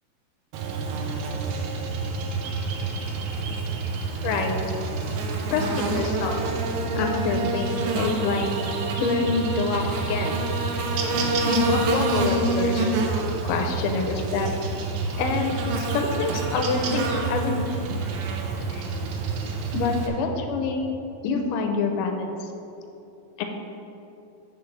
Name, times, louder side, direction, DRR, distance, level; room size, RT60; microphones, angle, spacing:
Buzz, 0.5-20.1, right 3 dB, 70° right, 2.1 m, -27 dB
voice 1, 4.2-4.6 5.5-6.4 6.9-8.5 9.0-10.4 11.4-12.9 13.4-14.5 15.2-18.0 18.7-18.8 19.7-20.9 21.2-22.3 23.4-23.5, left 4 dB, 75° left, 3 dB, 2.3 m, -26 dB
7.7 x 5.5 x 7.3 m, 2.9 s
omnidirectional pair, 4.0 m